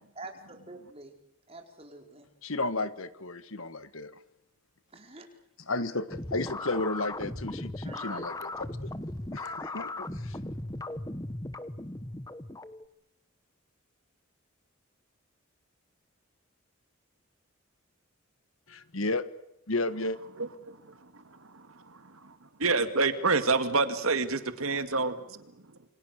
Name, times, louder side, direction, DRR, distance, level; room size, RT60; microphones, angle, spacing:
voice 1, 0.1-1.2 1.5-2.3 4.9-5.3 7.8-8.4, right 2 dB, 30° right, 4 dB, 4.5 m, -47 dB
voice 2, 2.4-4.2 5.7-8.7 9.3-10.4 18.7-19.2 19.7-20.2, left 2 dB, 75° left, 13 dB, 1.7 m, -33 dB
sound 1, 6.1-12.9, left 2 dB, 15° left, 1.1 m, -37 dB
voice 3, 20.4-20.8 21.5-22.3 22.6-25.4, right 3 dB, 80° right, 10 dB, 2.2 m, -28 dB
28.0 x 25.5 x 6.6 m, 0.85 s
head